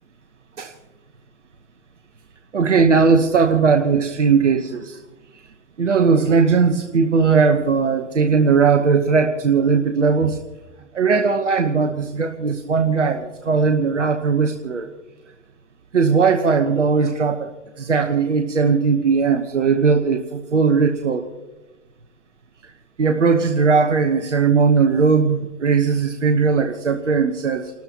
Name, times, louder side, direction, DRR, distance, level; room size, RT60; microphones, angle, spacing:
voice 1, 2.5-5.0 5.8-10.4 10.9-14.9 15.9-17.5 17.8-21.3 22.6-22.7 23.0-27.7, right 5 dB, 90° right, 6 dB, 1.1 m, -18 dB
30.0 x 13.5 x 2.9 m, 1.1 s
hypercardioid pair, 100°, 35 cm